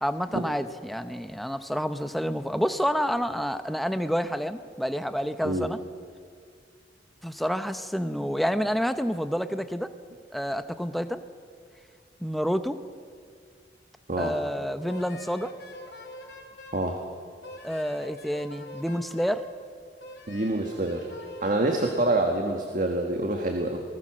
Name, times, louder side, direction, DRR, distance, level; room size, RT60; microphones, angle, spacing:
voice 1, 0.0-5.8 7.2-9.9 10.3-11.2 12.2-12.8 14.2-15.5 17.6-19.4, equal, ahead, 9 dB, 0.8 m, -28 dB
Wind instrument woodwind instrument, 14.9-16.9 17.4-19.5 20.0-22.0, left 1 dB, 70° left, 3.4 m, -45 dB
voice 2, 16.7-17.0 20.3-21.1 21.4-23.8, right 2 dB, 45° right, 3 dB, 1.7 m, -26 dB
27.5 x 20.0 x 6.3 m, 2.1 s
head